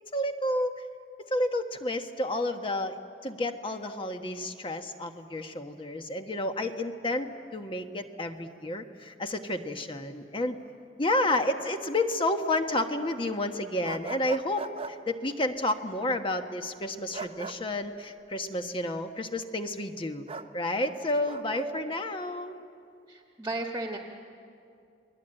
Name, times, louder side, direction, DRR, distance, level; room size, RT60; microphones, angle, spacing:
voice 1, 0.1-0.8 1.3-3.0 3.2-10.6 11.0-20.3 20.5-22.5, left 1 dB, 30° left, 6 dB, 1.3 m, -30 dB
sound 1, 13.8-14.9 17.1-17.6 20.3-20.5 21.3-21.6, right 4 dB, 35° right, 0.8 m, -38 dB
voice 2, 21.5-22.0 23.1-24.0, right 2 dB, 15° right, 1 dB, 1.5 m, -35 dB
29.5 x 21.0 x 9.0 m, 2.5 s
head